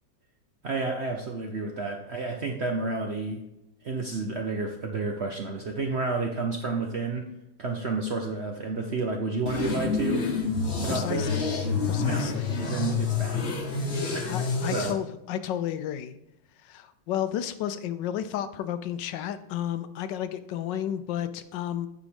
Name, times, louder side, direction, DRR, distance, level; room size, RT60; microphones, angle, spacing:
voice 1, 0.6-3.4 3.8-7.3 7.6-10.3 10.8-11.5 12.0-12.4 12.6-13.5 14.1-14.4 14.7-15.0, right 3 dB, 55° right, 2 dB, 0.7 m, -30 dB
sound 1, 9.5-14.9, left 4 dB, 40° left, 1.1 m, -28 dB
voice 2, 10.8-11.5 11.9-12.5 14.3-16.1 16.6-21.9, left 10 dB, 80° left, 11 dB, 1.3 m, -32 dB
9.0 x 4.8 x 5.1 m, 0.84 s
omnidirectional pair, 2.0 m